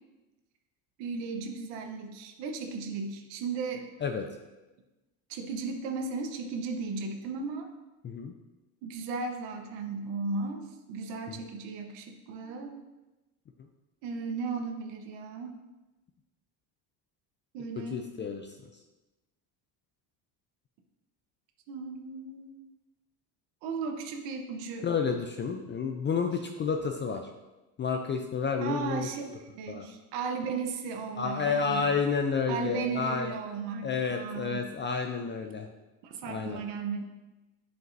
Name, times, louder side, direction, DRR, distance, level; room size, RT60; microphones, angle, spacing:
voice 1, 1.0-3.8 5.3-7.7 8.8-12.8 14.0-15.5 17.5-18.1 21.7-22.5 23.6-24.9 28.6-29.2 29.5-31.9 32.5-34.7 36.0-37.0, right 4 dB, 70° right, 4 dB, 0.9 m, -35 dB
voice 2, 17.8-18.6 24.8-27.3 27.8-29.0 29.7-29.9 31.2-33.3 33.8-35.7 36.3-36.6, left 5 dB, 25° left, 4 dB, 0.4 m, -30 dB
7.6 x 5.2 x 2.6 m, 1.1 s
supercardioid pair, 95°, 45 cm